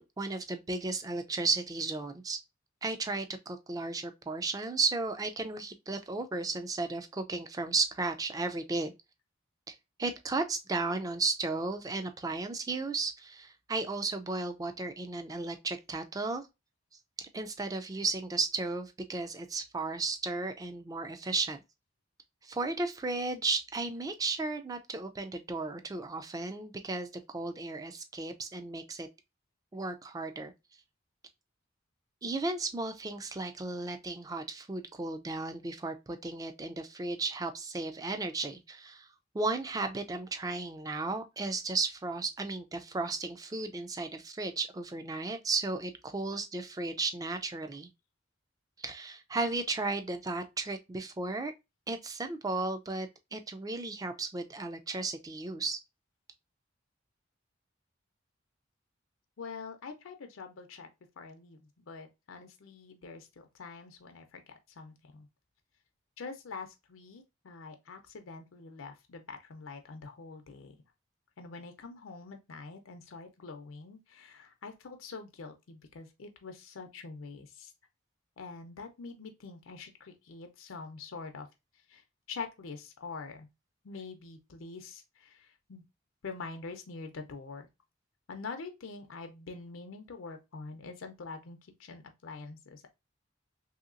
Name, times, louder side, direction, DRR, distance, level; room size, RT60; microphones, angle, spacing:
voice 1, 0.0-2.4 2.8-8.9 9.7-16.4 17.2-21.6 22.4-29.1 29.7-30.5 32.2-39.1 39.3-47.9 48.8-51.5 51.9-55.8, right 3 dB, 20° right, 0.3 m, -34 dB
voice 2, 59.4-60.9 61.2-64.4 64.8-65.3 66.2-70.8 71.4-77.7 78.4-81.5 81.9-83.5 83.8-85.8 86.2-87.7 88.3-92.9, left 4 dB, 85° left, 0.5 m, -45 dB
3.0 x 2.8 x 2.4 m
head